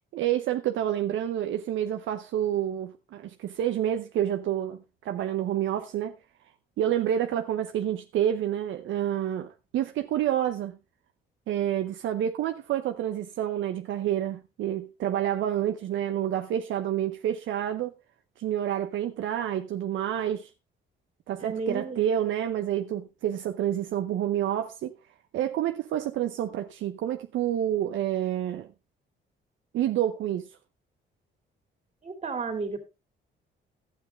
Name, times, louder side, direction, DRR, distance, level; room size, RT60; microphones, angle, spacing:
voice 1, 0.1-6.2 6.8-10.8 11.5-17.9 18.4-20.5 21.3-25.0 25.3-28.7 29.7-30.5, right 11 dB, 75° right, 0.7 m, -28 dB
voice 2, 21.4-22.0 32.0-32.8, right 4 dB, 35° right, 2.7 m, -32 dB
12.0 x 8.5 x 3.4 m
cardioid pair, 90°, 20 cm